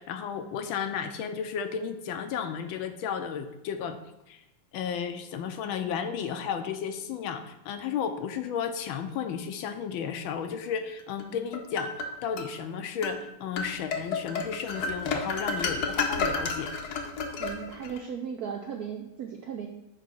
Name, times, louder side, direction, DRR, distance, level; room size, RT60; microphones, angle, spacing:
voice 1, 0.0-4.0 4.3-4.4 4.7-11.9 12.2-16.7, left 7 dB, 75° left, 8 dB, 1.4 m, -33 dB
sound 1, 11.2-12.5 13.0-13.2 13.6-18.0, left 4 dB, 60° left, 1.1 m, -31 dB
voice 2, 17.4-19.7, right 7 dB, 75° right, 3 dB, 0.9 m, -36 dB
9.3 x 3.2 x 6.0 m, 0.93 s
omnidirectional pair, 2.3 m